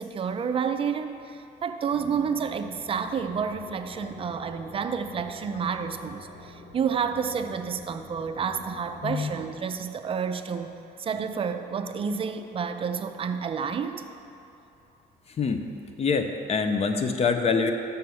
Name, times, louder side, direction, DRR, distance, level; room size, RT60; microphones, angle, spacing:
voice 1, 0.0-10.7 11.0-14.0, right 6 dB, 35° right, 8 dB, 0.5 m, -30 dB
sound 1, 1.9-9.7, left 2 dB, 70° left, 1.4 m, -47 dB
voice 2, 15.4-15.7 16.0-17.7, left 5 dB, 35° left, 6 dB, 0.6 m, -25 dB
6.8 x 5.6 x 6.3 m, 2.8 s
cardioid pair, 110°, 17 cm